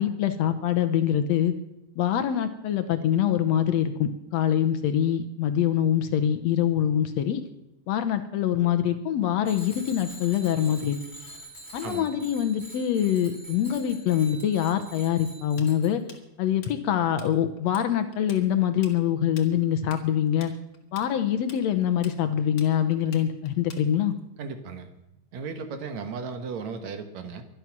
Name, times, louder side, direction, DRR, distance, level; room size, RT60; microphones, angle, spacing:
voice 1, 0.0-1.5 2.0-7.4 7.9-11.0 11.7-16.0 16.4-20.5 20.9-24.1, left 10 dB, 70° left, 9 dB, 1.9 m, -24 dB
Bicycle bell, 9.4-15.9, right 1 dB, 5° left, 3.1 m, -45 dB
Tools, 15.6-17.3 17.6-17.9 18.1-24.2, left 6 dB, 45° left, 2.3 m, -47 dB
voice 2, 24.4-24.9 25.3-27.4, right 5 dB, 70° right, 8 dB, 2.6 m, -35 dB
23.5 x 9.4 x 6.0 m, 0.92 s
omnidirectional pair, 3.5 m